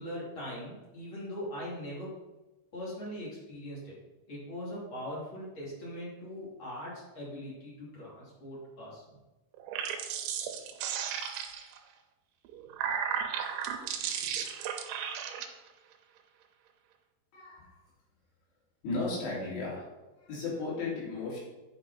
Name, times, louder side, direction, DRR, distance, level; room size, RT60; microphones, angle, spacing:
voice 1, 0.0-2.1 2.7-4.0 4.3-9.0, equal, 30° left, -6 dB, 3.2 m, -41 dB
sound 1, 9.5-11.8 12.5-15.5, right 8 dB, 90° right, 3.1 m, -34 dB
voice 2, 17.3-17.8 18.8-19.9 20.2-21.4, left 3 dB, 70° left, -7 dB, 5.2 m, -35 dB
10.0 x 5.6 x 4.1 m, 1.1 s
omnidirectional pair, 5.2 m